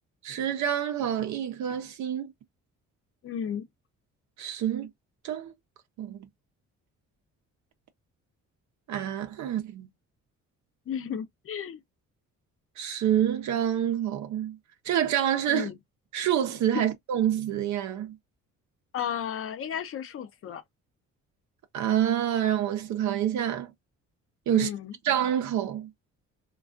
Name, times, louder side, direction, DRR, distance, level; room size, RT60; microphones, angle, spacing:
voice 1, 0.2-2.3 4.4-4.9 5.2-5.5 6.0-6.2 8.9-9.9 12.8-14.6 14.8-15.7 16.1-18.2 21.7-23.7 24.5-24.7 25.0-25.9, right 10 dB, 70° right, 0.5 m, -27 dB
voice 2, 3.2-3.6 10.9-11.8 15.5-15.8 16.7-16.8 18.9-20.6 24.5-24.9, left 8 dB, 45° left, 0.6 m, -33 dB
2.3 x 2.3 x 2.3 m
cardioid pair, 90°, 30 cm